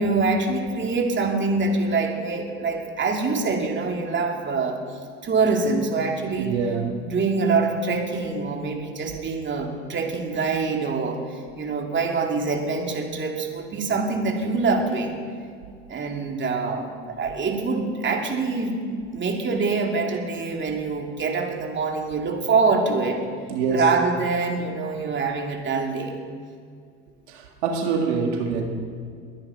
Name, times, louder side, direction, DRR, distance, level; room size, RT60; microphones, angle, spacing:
voice 1, 0.0-4.8 5.2-6.6 7.0-15.2 15.9-18.8 19.1-23.2 23.7-26.2, right 4 dB, 35° right, 1 dB, 2.9 m, -25 dB
voice 2, 6.4-7.1 23.5-23.9 27.3-28.6, right 5 dB, 90° right, 2 dB, 1.9 m, -25 dB
22.0 x 9.5 x 5.2 m, 2.2 s
hypercardioid pair, 85°, 32 cm